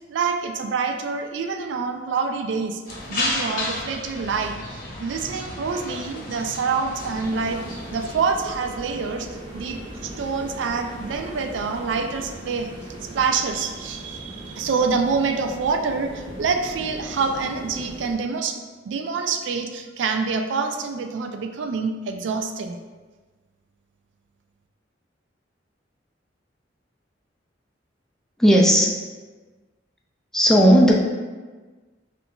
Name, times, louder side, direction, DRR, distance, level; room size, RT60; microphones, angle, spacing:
voice 1, 0.1-2.8 3.1-4.5 5.0-7.6 7.9-9.3 9.5-12.7 13.0-22.8, right 5 dB, 75° right, 5 dB, 0.3 m, -26 dB
sound 1, 2.9-8.2, left 2 dB, 50° left, 0.8 m, -32 dB
sound 2, 7.0-18.1, right 1 dB, 25° right, 0.7 m, -39 dB
voice 2, 28.4-28.9 30.3-31.0, equal, 5° left, -2 dB, 0.4 m, -15 dB
5.4 x 2.5 x 2.3 m, 1.3 s
head